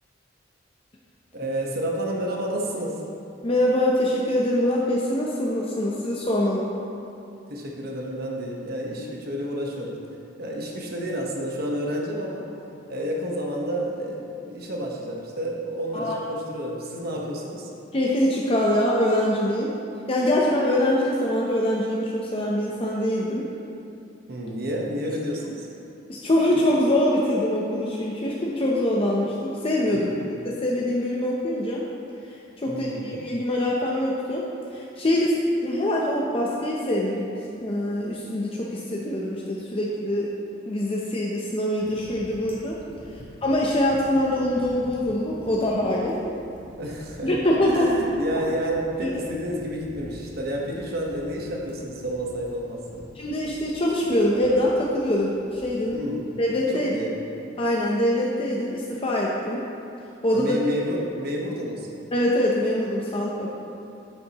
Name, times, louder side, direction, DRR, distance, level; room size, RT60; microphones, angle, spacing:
voice 1, 1.3-3.0 7.5-10.0 10.4-12.5 12.9-17.7 24.3-25.7 29.9-30.2 32.7-33.1 43.0-43.2 46.8-53.1 55.9-56.3 56.7-57.1 60.3-61.9, equal, 55° right, -1 dB, 1.2 m, -30 dB
voice 2, 3.4-6.7 15.9-16.2 17.9-19.7 20.1-23.5 26.1-30.1 30.4-31.8 32.2-34.4 34.7-35.4 35.6-37.2 37.5-40.3 40.6-42.8 43.1-46.2 47.2-48.0 53.2-56.0 56.4-56.9 57.6-59.7 60.2-60.6 62.1-63.5, left 1 dB, 30° left, -3 dB, 0.7 m, -24 dB
sound 1, 41.8-56.3, equal, 10° right, 2.0 m, -46 dB
9.0 x 8.3 x 3.0 m, 2.6 s
head